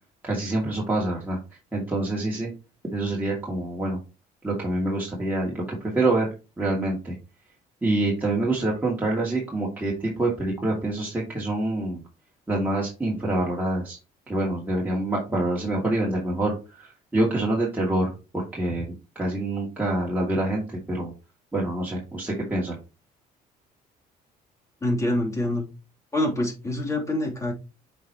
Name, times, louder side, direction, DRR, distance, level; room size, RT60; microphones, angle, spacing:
voice 1, 0.2-1.4 1.7-2.5 2.9-4.0 4.4-6.3 6.6-7.1 7.8-12.0 12.5-14.0 14.3-21.1 21.5-22.8, right 2 dB, 10° right, -4 dB, 2.3 m, -26 dB
voice 2, 24.8-25.7 26.1-27.5, left 1 dB, 20° left, -1 dB, 2.9 m, -25 dB
8.1 x 4.8 x 2.9 m, 0.30 s
cardioid pair, 110°, 17 cm